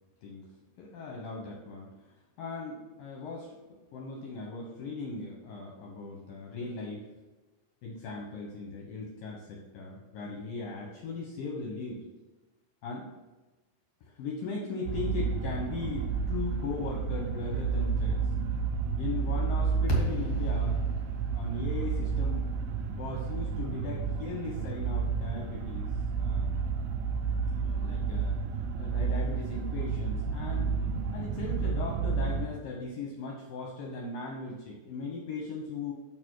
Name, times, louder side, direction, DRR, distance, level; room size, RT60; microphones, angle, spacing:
voice 1, 0.8-7.1 7.8-12.0 12.8-13.1 14.0-18.3 19.0-20.8 21.3-22.5 23.0-26.5 27.6-28.4 28.8-30.8 31.1-35.9, left 3 dB, 70° left, -1 dB, 2.2 m, -38 dB
sound 1, 14.9-32.5, right 5 dB, 80° right, 2.1 m, -31 dB
sound 2, 19.9-24.2, equal, 55° left, 1.6 m, -36 dB
6.7 x 6.5 x 4.6 m, 1.2 s
omnidirectional pair, 5.1 m